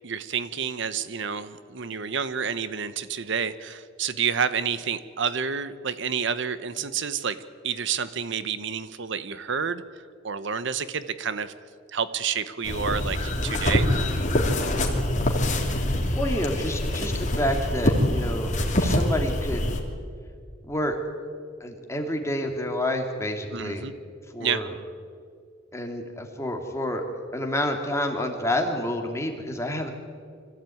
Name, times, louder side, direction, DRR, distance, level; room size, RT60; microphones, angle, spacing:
voice 1, 0.0-7.4 7.6-9.8 10.2-11.5 11.9-13.9 23.5-23.9 24.4-24.6, right 6 dB, 65° right, 13 dB, 0.9 m, -29 dB
sound 1, 12.6-19.8, left 1 dB, 40° left, 3.0 m, -25 dB
voice 2, 16.1-18.5 18.8-19.7 20.6-21.0 21.6-23.9 24.3-24.8 25.7-27.0 27.3-29.9, left 1 dB, 15° left, 3 dB, 2.7 m, -29 dB
25.0 x 15.0 x 9.3 m, 2.1 s
head